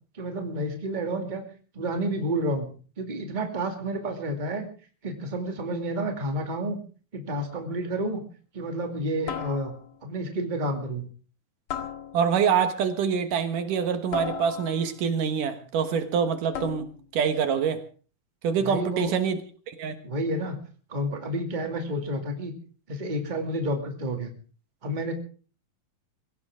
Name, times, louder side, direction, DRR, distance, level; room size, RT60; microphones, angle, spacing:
voice 1, 0.1-1.4 1.7-2.7 3.0-4.7 5.0-6.8 7.1-8.2 8.5-9.7 10.0-11.0 18.6-19.1 20.0-20.6 20.9-22.5 22.9-24.3 24.8-25.1, right 1 dB, 15° right, 4 dB, 2.1 m, -30 dB
sound 1, 7.5-7.8 9.3-10.1 11.7-12.5 14.1-15.1 16.5-17.1, left 8 dB, 75° left, 3.5 m, -37 dB
voice 2, 12.1-16.9 17.1-17.8 18.4-19.4 19.7-20.0, right 7 dB, 75° right, 8 dB, 2.9 m, -25 dB
23.5 x 16.0 x 3.7 m, 0.39 s
omnidirectional pair, 3.9 m